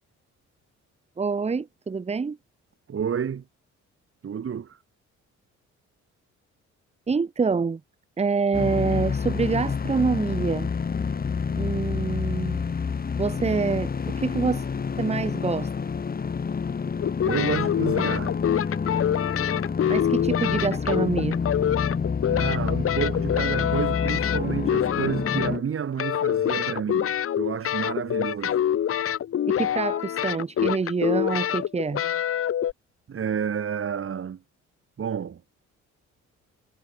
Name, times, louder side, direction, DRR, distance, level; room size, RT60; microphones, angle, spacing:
voice 1, 1.2-2.4 7.1-7.8 8.2-10.7 11.6-12.6 13.2-14.7 15.0-15.7 19.9-21.4 29.4-32.0, right 5 dB, 20° right, 0.8 m, -26 dB
voice 2, 2.9-3.4 4.2-4.8 17.2-18.4 22.3-28.6 33.1-34.4 35.0-35.4, right 7 dB, 45° right, 2.2 m, -30 dB
sound 1, 8.5-25.6, left 5 dB, 30° left, 1.2 m, -28 dB
sound 2, 17.0-25.7 26.0-32.7, left 10 dB, 50° left, 0.8 m, -26 dB
cardioid pair, 90°, 30 cm